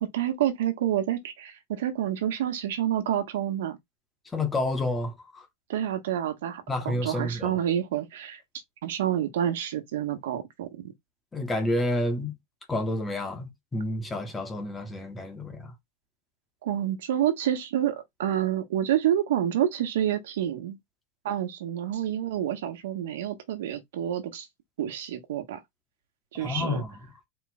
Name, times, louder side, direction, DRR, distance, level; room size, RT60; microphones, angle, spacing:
voice 1, 0.0-3.8 5.7-8.4 8.8-10.9 16.6-20.8 21.2-24.5 24.8-25.6 26.3-26.8, right 11 dB, 75° right, 1.2 m, -28 dB
voice 2, 4.3-5.5 6.7-7.6 11.3-12.3 12.7-15.7 26.4-27.0, left 1 dB, 10° left, 0.9 m, -29 dB
4.4 x 2.4 x 4.1 m
supercardioid pair, 180°, 0 cm